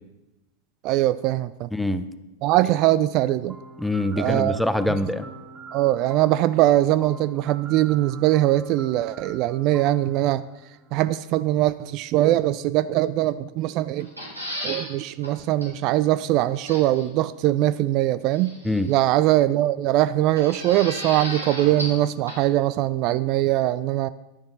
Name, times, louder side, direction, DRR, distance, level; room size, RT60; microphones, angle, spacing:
voice 1, 0.8-1.7 2.4-3.6 4.2-4.6 5.7-10.4 10.9-14.1 14.6-18.6 18.9-24.1, right 14 dB, 40° right, 16 dB, 0.3 m, -21 dB
voice 2, 1.7-2.1 3.8-5.3 18.6-18.9, left 1 dB, 5° left, 12 dB, 0.6 m, -24 dB
sound 1, 3.5-11.3, right 4 dB, 15° right, 1.7 m, -44 dB
Squeaky Shed Door, 14.0-14.9 15.2-15.3 15.6-15.7 16.7-17.1 18.3-18.9 20.4-22.0 22.3-22.4, equal, 85° right, 3.9 m, -34 dB
11.5 x 10.5 x 4.0 m, 0.99 s
figure-of-eight pair, 90°, 0 cm